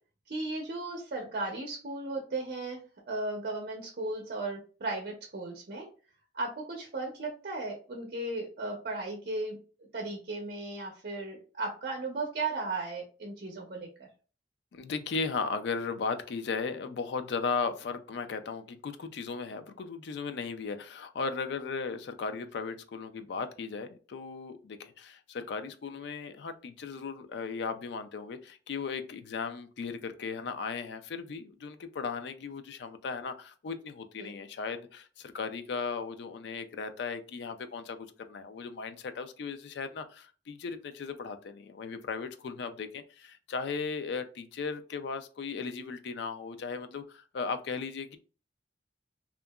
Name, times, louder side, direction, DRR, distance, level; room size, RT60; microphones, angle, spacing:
voice 1, 0.3-2.8 3.1-5.9 6.3-9.6 9.9-14.1 34.2-34.3, right 2 dB, 55° right, 1 dB, 0.6 m, -36 dB
voice 2, 14.7-48.2, left 5 dB, 70° left, 9 dB, 0.4 m, -36 dB
2.7 x 2.4 x 2.2 m, 0.37 s
head